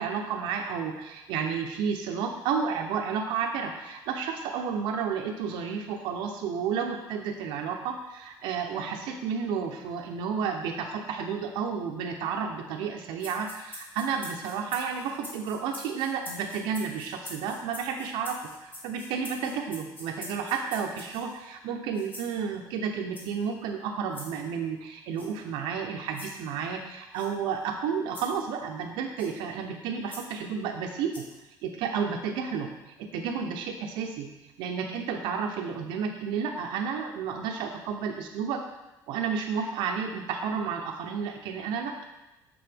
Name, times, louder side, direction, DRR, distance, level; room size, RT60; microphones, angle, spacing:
voice 1, 0.0-31.2 31.6-32.7 33.0-34.3 34.6-38.6 39.1-41.9, right 6 dB, 85° right, 3 dB, 0.7 m, -31 dB
sound 1, 13.2-21.4 21.9-22.3 23.1-23.4 24.1-24.3 25.2-25.3 26.1-26.3 27.1-27.3 28.1-28.3 29.2-29.3 30.1-30.3 31.1-31.4, left 1 dB, 25° left, 1.4 m, -44 dB
7.7 x 3.7 x 3.5 m, 0.99 s
cardioid pair, 145°, 8 cm